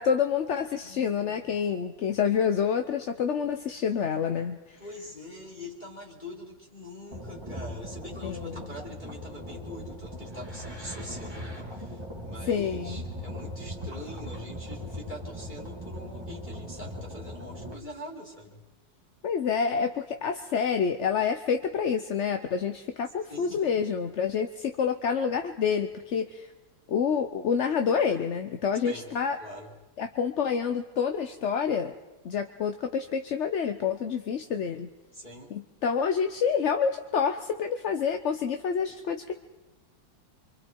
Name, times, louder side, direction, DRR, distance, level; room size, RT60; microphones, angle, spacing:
voice 1, 0.0-4.8 8.2-8.7 12.5-13.0 19.2-26.5 26.9-29.4 30.0-31.9 32.2-34.9 35.5-39.3, left 6 dB, 55° left, 7 dB, 0.9 m, -28 dB
voice 2, 0.8-1.4 4.8-18.6 23.3-23.6 28.8-29.1 29.4-29.7 35.1-35.5, left 1 dB, 25° left, -2 dB, 3.1 m, -44 dB
sound 1, 7.1-17.7, equal, 15° right, 2.0 m, -39 dB
25.5 x 25.0 x 4.6 m, 1.1 s
omnidirectional pair, 2.0 m